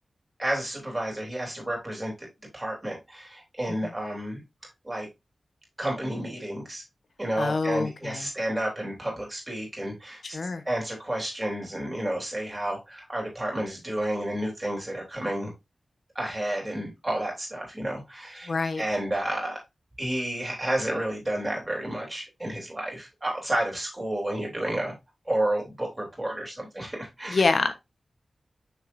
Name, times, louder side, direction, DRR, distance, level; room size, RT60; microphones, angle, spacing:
voice 1, 0.4-2.3 2.5-4.4 4.8-5.1 5.8-6.8 7.2-10.4 10.7-15.5 16.2-19.6 20.0-24.9 25.3-27.5, right 1 dB, 15° right, 3.3 m, -31 dB
voice 2, 7.4-8.3 10.3-10.6 18.5-18.8 27.3-27.8, left 3 dB, 65° left, 1.1 m, -26 dB
6.5 x 6.2 x 2.7 m
wide cardioid pair, 120°, 0 cm